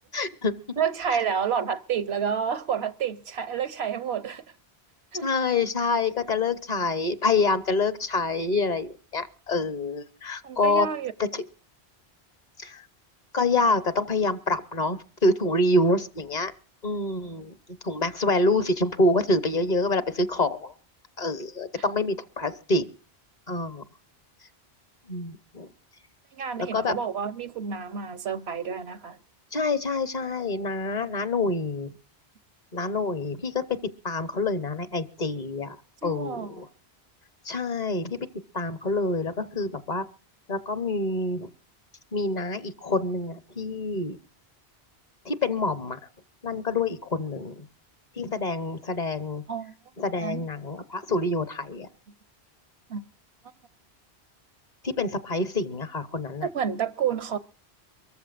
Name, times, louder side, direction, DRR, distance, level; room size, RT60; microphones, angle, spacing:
voice 1, 0.1-0.5 5.2-10.9 11.2-11.4 12.6-12.9 13.3-16.5 16.8-17.6 17.8-20.7 21.2-22.9 23.5-23.8 25.1-25.7 26.7-26.9 29.5-31.9 32.7-33.6 34.0-35.8 36.0-36.7 37.4-38.2 38.5-40.0 40.5-41.5 42.1-44.2 45.2-46.0 46.4-47.7 48.2-49.4 50.0-51.9 54.8-56.5, left 2 dB, 45° left, 1.1 m, -26 dB
voice 2, 0.8-4.4 5.1-5.3 10.4-11.1 26.3-29.2 36.0-36.5 49.5-49.7 50.2-50.4 52.9-53.1 56.4-57.4, right 7 dB, 80° right, 1.1 m, -29 dB
24.0 x 14.5 x 2.5 m
omnidirectional pair, 1.1 m